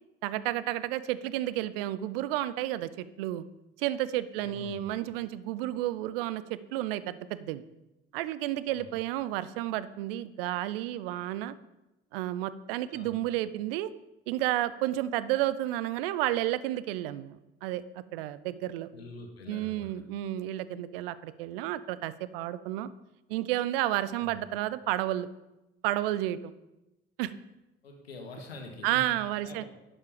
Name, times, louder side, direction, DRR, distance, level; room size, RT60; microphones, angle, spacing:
voice 1, 0.2-3.4 3.8-7.6 8.1-11.5 12.1-13.9 14.3-17.8 18.1-18.9 19.5-22.9 23.3-25.3 25.8-26.5 27.2-27.3 28.8-29.6, right 14 dB, 70° right, 16 dB, 0.6 m, -31 dB
voice 2, 4.4-4.8 8.7-8.9 12.9-13.2 18.9-19.9 24.1-24.4 27.8-29.1 29.4-29.6, left 2 dB, 85° left, 3 dB, 1.6 m, -45 dB
11.5 x 7.2 x 5.1 m, 0.97 s
figure-of-eight pair, 50°, 30 cm